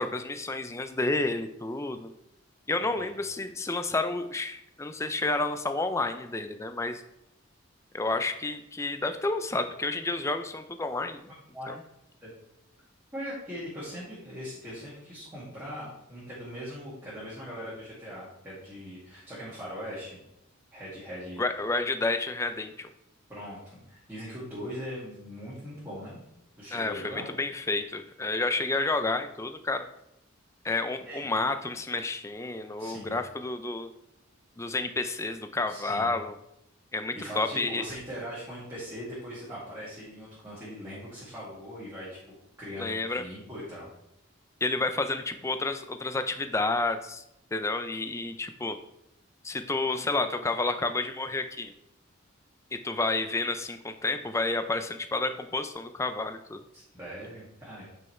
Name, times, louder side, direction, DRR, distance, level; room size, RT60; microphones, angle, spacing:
voice 1, 0.0-2.1 2.7-7.0 7.9-11.3 11.7-11.8 21.4-22.9 26.7-29.9 30.6-33.9 34.6-36.4 36.9-37.8 42.8-43.2 44.6-47.2 47.5-48.8 49.4-51.7 52.7-56.6, left 2 dB, 15° left, 8 dB, 0.4 m, -30 dB
voice 2, 2.8-3.2 11.5-11.7 12.2-12.3 13.1-20.2 20.7-21.4 23.3-26.2 26.6-27.3 31.1-31.3 32.8-33.2 35.7-36.2 37.1-42.2 42.6-43.9 56.7-57.8, equal, 10° right, -9 dB, 2.1 m, -40 dB
9.4 x 5.4 x 3.2 m, 0.81 s
head